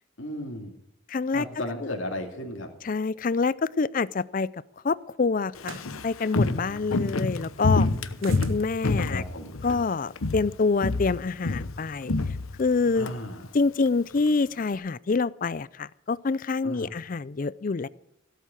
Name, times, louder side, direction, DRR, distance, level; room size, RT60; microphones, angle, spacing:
voice 1, 0.2-0.7 1.3-2.7 6.6-7.5 9.1-9.6 13.0-13.5 16.6-16.9, left 1 dB, 70° left, 2 dB, 2.4 m, -36 dB
voice 2, 1.1-1.4 2.9-4.5 4.8-7.9 8.2-9.2 9.6-12.1 12.6-13.1 13.5-17.9, left 4 dB, 40° left, 20 dB, 0.4 m, -26 dB
Walk footsteps, 5.6-9.9 10.2-10.5 10.8-13.1 13.4-13.5, left 3 dB, 90° left, 1.0 m, -27 dB
sound 1, 5.6-6.0 8.2-8.6, right 5 dB, 75° right, 1.2 m, -42 dB
17.0 x 8.4 x 7.5 m, 0.83 s
head